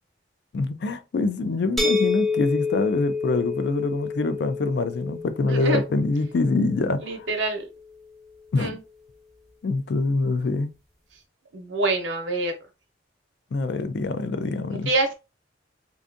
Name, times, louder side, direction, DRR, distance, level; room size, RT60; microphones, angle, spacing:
voice 1, 0.5-7.1 8.5-8.8 9.6-10.7 13.5-14.9, left 3 dB, 65° left, 0.4 m, -25 dB
sound 1, 1.8-7.5, left 4 dB, ahead, 0.5 m, -29 dB
voice 2, 5.5-5.8 7.0-7.7 8.6-8.8 11.5-12.6 14.7-15.1, right 2 dB, 90° right, 0.7 m, -26 dB
2.5 x 2.3 x 2.5 m
head